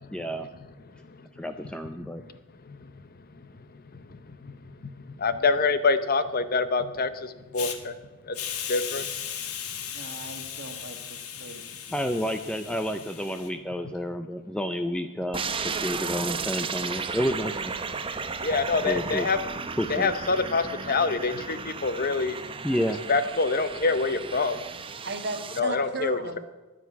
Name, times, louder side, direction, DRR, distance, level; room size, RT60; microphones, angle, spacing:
voice 1, 0.1-0.5 1.3-2.2 11.9-17.7 18.8-19.3 19.8-20.1 22.6-23.0, equal, 5° left, 7 dB, 0.5 m, -30 dB
voice 2, 4.1-4.5 5.2-7.9 8.2-8.4 8.7-9.1 18.4-19.4 19.9-22.4 23.1-24.6 25.6-26.4, left 4 dB, 40° left, 12 dB, 0.8 m, -26 dB
Hiss, 7.5-7.8 8.3-13.5, left 9 dB, 80° left, 1.4 m, -37 dB
voice 3, 9.9-11.0 11.4-11.6 25.0-26.4, right 3 dB, 50° right, 7 dB, 1.5 m, -35 dB
sound 1, 15.3-25.6, right 5 dB, 25° right, 0.7 m, -34 dB
10.5 x 10.0 x 8.3 m, 1.2 s
head